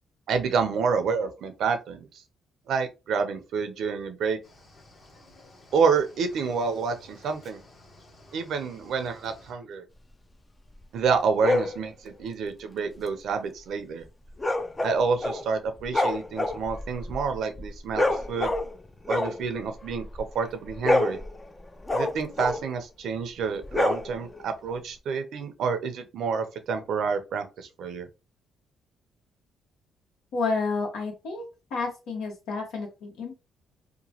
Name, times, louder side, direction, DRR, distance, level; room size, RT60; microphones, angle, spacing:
voice 1, 0.3-2.2 2.7-4.4 5.7-7.6 8.3-9.8 10.9-14.0 14.8-18.5 19.1-21.2 21.9-28.1, right 5 dB, 70° right, 0.6 m, -28 dB
Cricket / Waves surf, 4.4-9.5, left 2 dB, 45° left, 1.1 m, -53 dB
sound 1, 11.4-11.8 14.4-15.5 15.8-18.8 19.1-20.3 20.6-22.7 23.6-24.4, left 2 dB, 20° left, 0.4 m, -27 dB
voice 2, 30.3-31.4 31.7-33.3, left 4 dB, 85° left, 1.2 m, -30 dB
2.9 x 2.2 x 2.8 m
cardioid pair, 90°, 0 cm